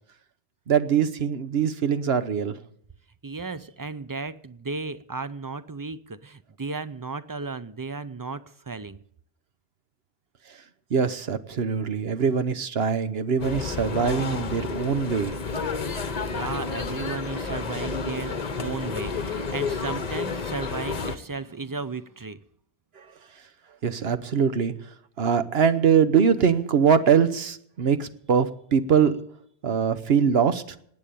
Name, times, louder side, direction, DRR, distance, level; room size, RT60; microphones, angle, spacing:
voice 1, 0.7-2.6 10.9-15.4 23.8-24.7 25.2-29.2 29.6-30.8, right 7 dB, 65° right, 12 dB, 1.1 m, -22 dB
voice 2, 3.2-9.0 16.2-22.4, right 4 dB, 30° right, 14 dB, 0.3 m, -34 dB
sound 1, 13.4-21.2, left 5 dB, 40° left, 1.0 m, -31 dB
19.0 x 8.7 x 6.8 m, 0.67 s
omnidirectional pair, 1.2 m